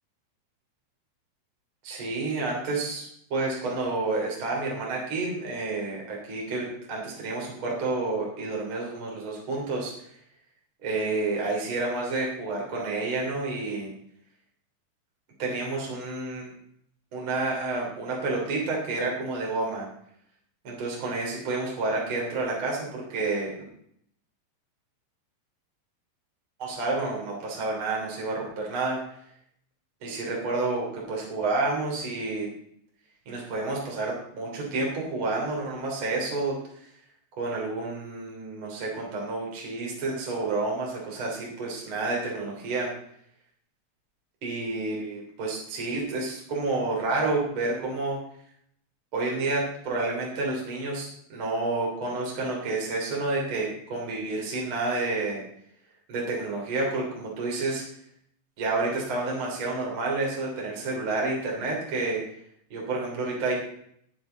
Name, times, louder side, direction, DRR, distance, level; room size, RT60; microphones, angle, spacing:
voice 1, 1.8-9.9 10.8-13.9 15.4-16.5 17.1-19.9 20.6-23.5 26.6-29.0 30.0-32.5 33.3-36.6 37.4-42.9 44.4-48.2 49.1-55.4 56.1-57.8 58.6-62.2 62.7-63.5, right 3 dB, 30° right, -2 dB, 3.5 m, -29 dB
20.0 x 7.2 x 3.9 m, 0.69 s
omnidirectional pair, 5.0 m